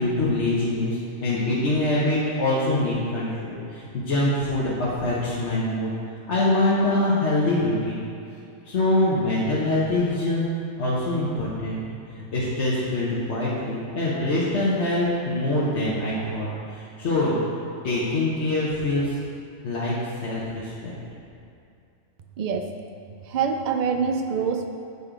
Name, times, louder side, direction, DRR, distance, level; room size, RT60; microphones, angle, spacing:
voice 1, 0.0-5.9 6.3-8.0 8.7-10.4 10.8-11.8 12.3-17.3 17.8-19.1 19.6-19.9 20.2-21.0, left 1 dB, 60° left, -8 dB, 1.3 m, -24 dB
voice 2, 22.4-22.7 23.3-24.7, right 6 dB, 75° right, 5 dB, 0.4 m, -25 dB
8.1 x 4.2 x 4.9 m, 2.5 s
omnidirectional pair, 1.3 m